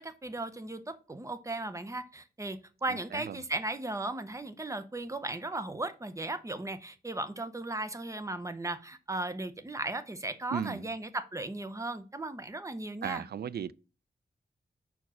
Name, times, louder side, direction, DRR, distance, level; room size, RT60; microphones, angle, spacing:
voice 1, 0.0-13.2, right 2 dB, 20° right, 0.7 m, -36 dB
voice 2, 2.9-3.4 10.5-10.8 13.0-13.7, right 8 dB, 70° right, 0.4 m, -36 dB
5.3 x 4.7 x 6.0 m
wide cardioid pair, 140°, 17 cm